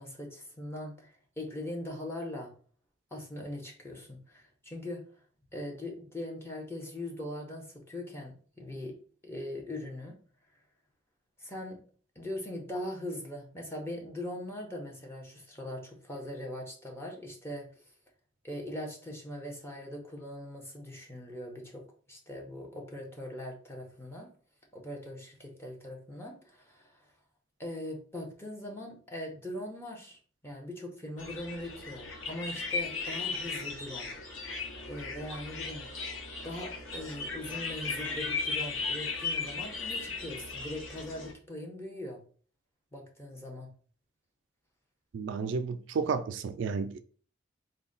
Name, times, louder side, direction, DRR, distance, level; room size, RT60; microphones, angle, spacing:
voice 1, 0.0-2.5 3.1-5.0 5.5-9.0 9.2-10.2 11.4-11.8 12.2-17.7 18.4-21.8 22.1-24.3 24.7-27.0 27.6-34.1 34.9-35.9 36.4-42.2 42.9-43.7, left 1 dB, 15° left, 0.8 m, -41 dB
sound 1, 31.2-41.3, left 4 dB, 90° left, 0.9 m, -36 dB
voice 2, 45.1-47.0, right 5 dB, 65° right, 0.3 m, -32 dB
3.8 x 2.2 x 3.9 m
head